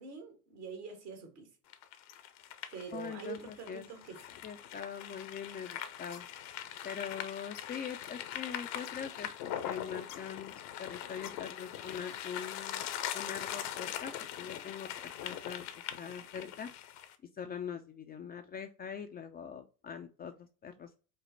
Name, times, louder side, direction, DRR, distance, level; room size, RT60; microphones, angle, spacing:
voice 1, 0.0-1.5 2.7-4.2, right 6 dB, 75° right, 1.8 m, -45 dB
sound 1, 1.7-17.1, left 10 dB, 60° left, 0.7 m, -42 dB
voice 2, 2.9-3.8 4.4-6.2 6.8-10.5 10.8-12.9 13.1-15.6 16.0-16.7 17.4-21.0, left 7 dB, 25° left, 0.3 m, -43 dB
5.2 x 2.1 x 3.9 m
hypercardioid pair, 70°, 46 cm